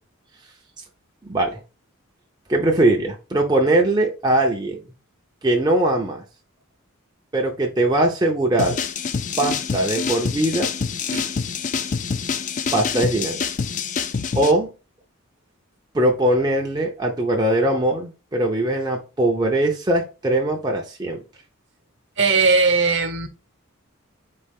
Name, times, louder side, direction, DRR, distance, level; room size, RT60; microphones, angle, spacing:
voice 1, 1.2-1.6 2.5-4.8 5.4-6.2 7.3-8.8 9.4-10.7 12.7-13.4 14.3-14.7 15.9-21.2, right 1 dB, 20° right, 0.6 m, -21 dB
sound 1, 8.6-14.5, left 6 dB, 35° left, 0.4 m, -26 dB
voice 2, 22.2-23.3, right 4 dB, 55° right, 0.9 m, -18 dB
4.2 x 3.0 x 3.5 m
head